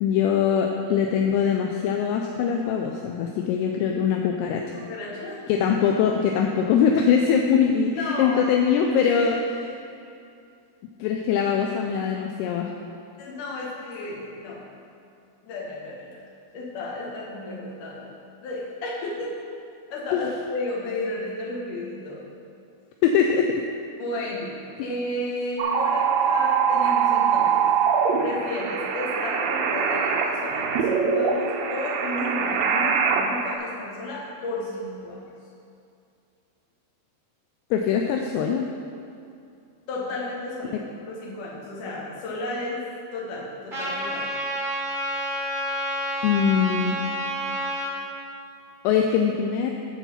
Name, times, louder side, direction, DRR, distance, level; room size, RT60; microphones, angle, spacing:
voice 1, 0.0-4.6 5.5-9.4 9.6-9.8 11.0-12.7 20.1-20.3 23.0-23.6 37.7-38.7 46.2-47.0 48.8-49.7, left 7 dB, 80° left, 2 dB, 2.5 m, -22 dB
voice 2, 4.6-5.4 8.0-8.4 9.0-9.2 13.2-14.6 15.4-16.1 16.5-18.1 18.4-19.3 19.9-22.3 24.0-24.5 24.8-27.7 28.2-35.2 39.9-42.9 43.1-44.2, left 2 dB, 55° left, -5 dB, 2.8 m, -33 dB
sound 1, 25.6-33.5, right 6 dB, 85° right, 2.0 m, -23 dB
Trumpet, 43.7-47.9, equal, 35° right, 0.8 m, -29 dB
10.5 x 4.5 x 7.2 m, 2.5 s
omnidirectional pair, 4.8 m